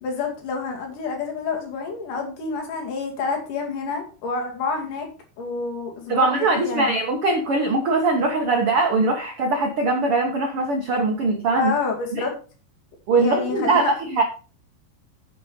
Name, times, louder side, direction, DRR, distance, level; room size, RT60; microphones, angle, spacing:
voice 1, 0.0-5.1 5.4-6.9 11.6-12.3 13.2-13.9, left 4 dB, 60° left, 2 dB, 3.7 m, -28 dB
voice 2, 6.1-11.7 12.1-12.2 13.1-14.2, right 3 dB, 60° right, 3 dB, 1.4 m, -21 dB
10.0 x 6.2 x 5.2 m, 0.37 s
omnidirectional pair, 4.3 m